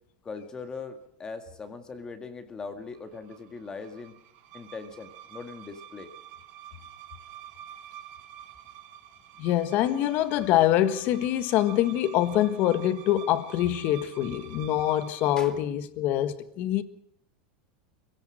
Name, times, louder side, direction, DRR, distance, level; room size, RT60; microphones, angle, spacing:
voice 1, 0.2-4.1 4.5-6.1 15.4-15.6, left 4 dB, 15° left, 2.0 m, -40 dB
sound 1, 2.9-15.6, right 11 dB, 45° right, 2.6 m, -48 dB
voice 2, 9.4-16.8, left 12 dB, 45° left, 1.5 m, -25 dB
24.5 x 17.0 x 6.5 m
supercardioid pair, 145°, 4 cm